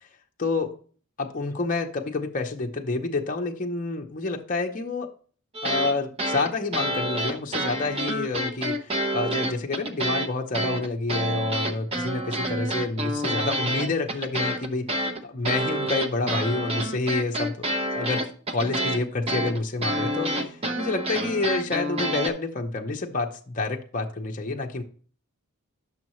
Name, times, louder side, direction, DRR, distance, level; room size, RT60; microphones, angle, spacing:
voice 1, 0.4-0.7 1.2-5.1 5.6-17.6 17.9-18.2 18.5-24.8, left 3 dB, 35° left, 0.7 m, -28 dB
sound 1, 5.5-5.9 6.2-10.3 10.5-22.3, right 1 dB, 25° right, 0.7 m, -28 dB
9.7 x 6.3 x 3.0 m
head